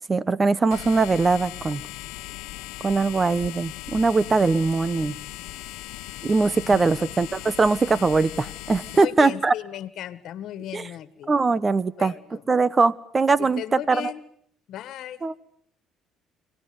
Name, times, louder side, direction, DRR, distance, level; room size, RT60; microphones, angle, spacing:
voice 1, 0.1-1.8 2.8-5.2 6.2-9.5 10.7-10.8 11.3-12.1 12.5-14.1 15.2-15.3, right 4 dB, 25° right, 20 dB, 1.1 m, -21 dB
sound 1, 0.7-9.0, left 18 dB, 85° left, 1.0 m, -38 dB
voice 2, 8.9-11.3 12.0-12.4 13.4-14.2 14.7-15.2, left 12 dB, 65° left, 14 dB, 1.7 m, -36 dB
24.5 x 18.5 x 9.5 m, 0.67 s
cardioid pair, 95°, 0 cm